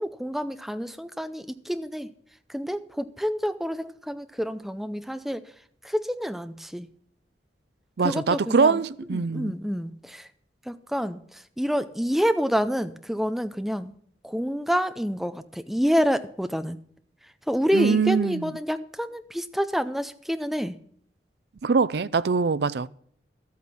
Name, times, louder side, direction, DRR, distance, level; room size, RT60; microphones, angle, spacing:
voice 1, 0.0-2.1 2.5-5.4 5.8-6.9 8.0-8.8 9.1-10.3 10.7-13.9 14.2-16.8 17.5-20.8, equal, ahead, 0.5 m, -28 dB
voice 2, 8.0-9.5 17.7-18.5 21.6-22.9, right 5 dB, 60° right, 0.4 m, -23 dB
12.5 x 8.5 x 6.0 m
head